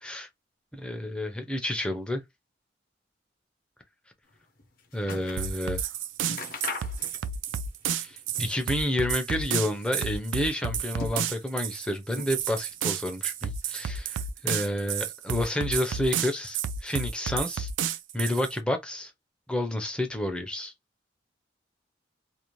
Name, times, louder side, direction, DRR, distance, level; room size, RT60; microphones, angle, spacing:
voice 1, 0.7-2.2 4.9-5.8 7.9-19.1 19.5-20.7, left 1 dB, 5° left, 0.5 m, -30 dB
sound 1, 4.3-5.5 5.8-5.9 6.2-7.5 7.8-8.8 9.1-10.0 10.6-11.6 12.1-12.8 13.1-13.9 14.6-14.7, left 3 dB, 50° left, 0.7 m, -41 dB
sound 2, 5.4-18.5, right 7 dB, 90° right, 0.3 m, -31 dB
2.5 x 2.0 x 2.9 m
head